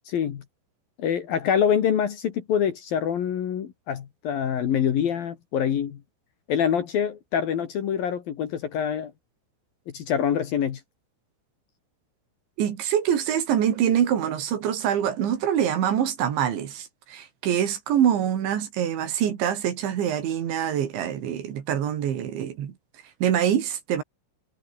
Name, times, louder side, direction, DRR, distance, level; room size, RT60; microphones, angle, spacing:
voice 1, 0.1-0.4 1.0-6.0 6.5-9.1 9.9-10.8, left 8 dB, 55° left, 3.2 m, -25 dB
voice 2, 12.6-22.7 23.2-24.0, right 9 dB, 70° right, 4.8 m, -25 dB
omnidirectional pair, 5.7 m